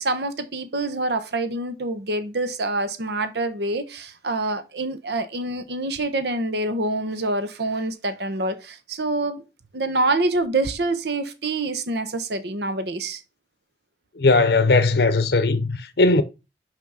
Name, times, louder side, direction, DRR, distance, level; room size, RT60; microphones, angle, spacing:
voice 1, 0.0-9.4 9.7-13.2, right 2 dB, 70° right, 1.0 m, -26 dB
voice 2, 14.2-16.2, left 3 dB, 65° left, 0.7 m, -18 dB
6.1 x 5.2 x 5.6 m
head